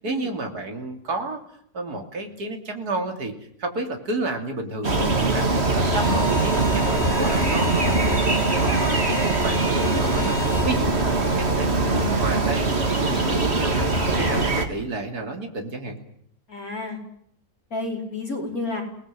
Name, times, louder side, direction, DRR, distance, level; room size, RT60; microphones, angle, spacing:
voice 1, 0.0-1.4 1.7-3.3 3.6-16.0, right 2 dB, 70° right, 4 dB, 3.5 m, -31 dB
sound 1, 4.8-14.7, right 3 dB, 40° right, 2.6 m, -22 dB
Bowed string instrument, 5.8-10.7, left 3 dB, 40° left, 3.4 m, -34 dB
voice 2, 16.5-17.0 17.7-18.8, left 2 dB, 60° left, 1 dB, 5.4 m, -30 dB
29.0 x 19.5 x 7.6 m, 0.67 s
omnidirectional pair, 1.7 m